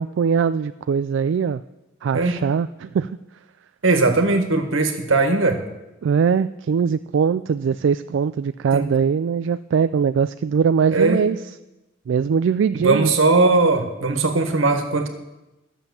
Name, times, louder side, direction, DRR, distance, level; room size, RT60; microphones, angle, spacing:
voice 1, 0.0-1.6 2.0-3.1 6.0-11.4 12.1-13.1, right 6 dB, 65° right, 12 dB, 0.3 m, -21 dB
voice 2, 3.8-5.6 8.7-8.9 10.9-11.2 12.8-15.1, right 3 dB, 85° right, 5 dB, 1.7 m, -19 dB
13.0 x 7.3 x 7.0 m, 0.99 s
head